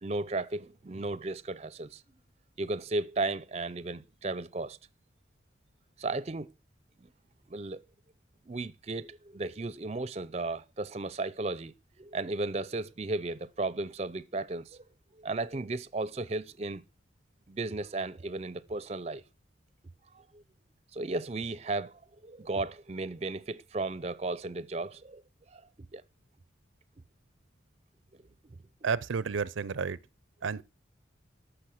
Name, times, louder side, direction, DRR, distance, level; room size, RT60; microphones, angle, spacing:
voice 1, 0.0-2.0 2.6-4.8 6.0-6.5 7.5-7.8 8.5-11.7 12.0-14.8 15.2-16.8 17.5-19.2 20.2-20.4 20.9-25.2 25.5-25.6 25.9-26.0, right 2 dB, 35° right, 0.5 m, -35 dB
voice 2, 28.8-30.0 30.4-30.6, right 5 dB, 90° right, 0.5 m, -31 dB
13.5 x 6.2 x 6.4 m
head